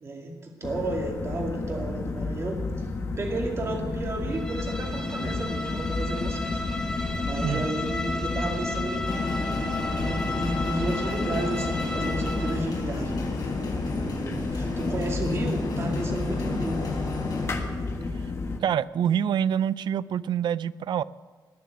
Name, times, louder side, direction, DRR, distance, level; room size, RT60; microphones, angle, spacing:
voice 1, 0.0-2.6 3.2-6.6 7.2-9.2 9.9-13.3 13.9-16.9, right 2 dB, 35° right, 1 dB, 2.3 m, -32 dB
sound 1, 0.6-18.6, left 3 dB, 35° left, 1.5 m, -31 dB
Bowed string instrument, 4.3-12.7, left 1 dB, 10° left, 1.7 m, -34 dB
sound 2, 9.1-17.5, left 3 dB, 65° left, 4.2 m, -33 dB
voice 2, 18.6-21.0, right 9 dB, 75° right, 18 dB, 0.4 m, -26 dB
20.0 x 6.9 x 9.2 m, 1.5 s
wide cardioid pair, 165°, 8 cm